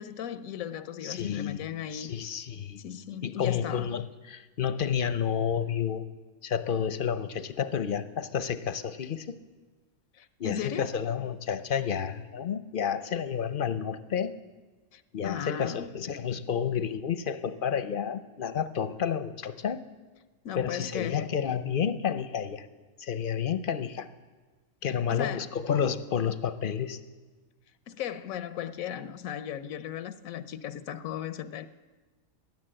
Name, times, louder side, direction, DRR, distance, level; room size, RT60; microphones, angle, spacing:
voice 1, 0.0-2.1 2.8-3.9 10.1-10.9 14.9-15.9 20.4-21.2 25.1-25.5 27.9-31.7, left 9 dB, 85° left, 1.1 m, -36 dB
voice 2, 1.0-1.7 1.9-2.8 3.2-6.0 6.4-9.3 10.4-14.3 15.1-19.8 20.6-22.7 23.0-24.1 24.8-27.0, left 7 dB, 50° left, 0.7 m, -30 dB
16.5 x 11.0 x 7.7 m
omnidirectional pair, 1.4 m